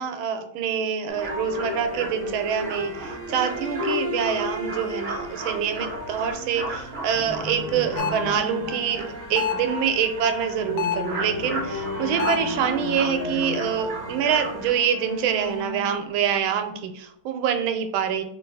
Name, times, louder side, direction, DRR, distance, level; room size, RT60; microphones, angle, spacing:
voice 1, 0.0-18.2, right 8 dB, 85° right, 7 dB, 1.4 m, -26 dB
sound 1, 1.1-16.6, left 1 dB, 25° right, 0.9 m, -34 dB
sound 2, 1.2-14.7, right 2 dB, 55° right, 0.7 m, -37 dB
sound 3, 8.0-8.3 9.4-9.7 10.8-11.2 12.2-12.6, left 9 dB, 90° left, 1.4 m, -27 dB
3.2 x 2.8 x 4.6 m, 0.73 s
omnidirectional pair, 2.2 m